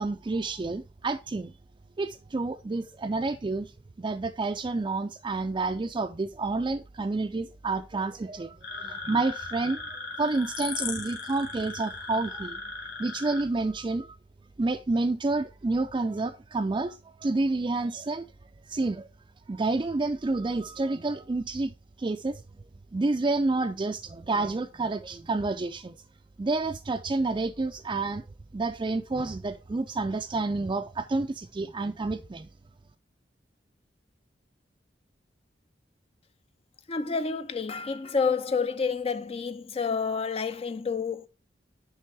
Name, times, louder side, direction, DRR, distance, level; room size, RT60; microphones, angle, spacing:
voice 1, 0.0-1.5 2.0-3.7 4.0-12.6 13.0-14.2 14.6-18.3 18.7-19.1 19.5-21.7 22.0-22.4 22.9-26.0 26.4-28.2 28.5-32.5, right 3 dB, 25° right, 0.4 m, -29 dB
sound 1, 8.6-13.4, left 4 dB, 65° left, 3.1 m, -37 dB
voice 2, 36.9-41.3, left 5 dB, 35° left, 0.4 m, -29 dB
10.5 x 3.5 x 4.6 m
head